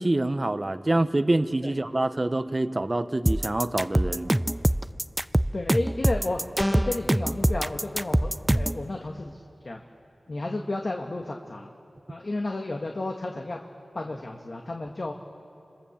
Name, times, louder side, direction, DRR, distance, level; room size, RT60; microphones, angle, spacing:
voice 1, 0.0-4.3, right 2 dB, 30° right, 11 dB, 0.9 m, -26 dB
sound 1, 3.3-8.8, right 1 dB, 10° right, 0.5 m, -24 dB
voice 2, 5.5-6.4 6.7-9.8 10.3-11.7 12.1-13.6 13.9-15.1, left 2 dB, 50° left, 2 dB, 1.5 m, -32 dB
sound 2, 6.6-7.1, left 1 dB, 10° left, 1.0 m, -28 dB
29.0 x 25.5 x 7.2 m, 2.8 s
wide cardioid pair, 70°, 0 cm